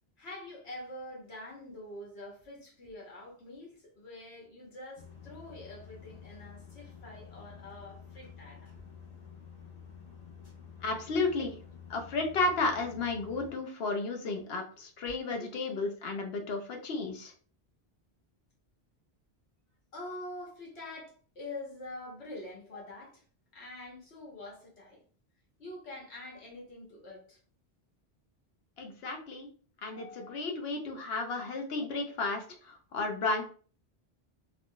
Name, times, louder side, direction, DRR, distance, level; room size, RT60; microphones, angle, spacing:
voice 1, 0.2-8.7 15.4-15.5 19.9-23.2 23.5-25.0 25.6-27.4 29.9-30.4, left 1 dB, 85° left, 1.3 m, -45 dB
sound 1, 5.0-13.6, left 6 dB, 40° left, 0.8 m, -50 dB
voice 2, 10.8-11.5 11.9-17.3 28.8-29.5 29.8-33.4, left 3 dB, 70° left, 0.9 m, -33 dB
3.4 x 2.5 x 2.2 m
omnidirectional pair, 1.1 m